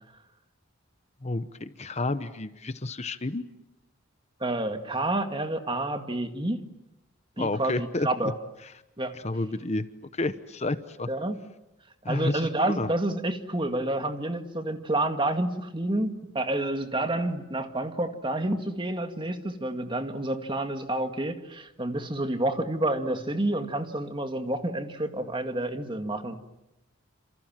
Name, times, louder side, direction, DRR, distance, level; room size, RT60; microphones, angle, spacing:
voice 1, 1.2-3.4 7.4-8.3 9.1-9.9 10.2-11.1 12.0-12.5 12.8-12.9, left 2 dB, 35° left, 11 dB, 1.0 m, -30 dB
voice 2, 4.4-6.6 7.4-8.4 9.0-9.2 11.1-11.4 12.1-26.4, right 1 dB, 25° right, 7 dB, 2.0 m, -29 dB
28.5 x 27.5 x 7.5 m, 0.91 s
head